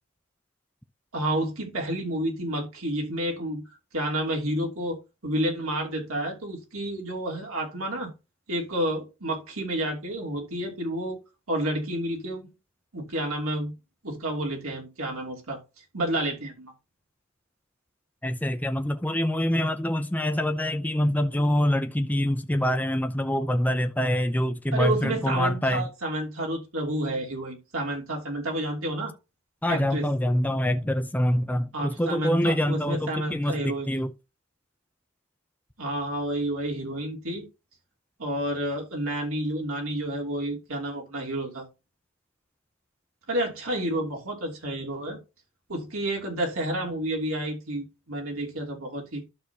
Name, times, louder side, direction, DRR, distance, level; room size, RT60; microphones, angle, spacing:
voice 1, 1.1-3.6 3.9-8.1 8.5-11.2 11.5-12.5 12.9-13.7 14.0-15.6 15.9-16.7 24.7-29.1 29.7-30.1 31.7-34.0 35.8-37.5 38.2-41.6 43.3-45.2 45.7-49.2, right 1 dB, 70° right, 3.0 m, -30 dB
voice 2, 18.2-25.9 29.6-34.1, equal, 10° left, 0.6 m, -25 dB
12.0 x 6.5 x 2.8 m
head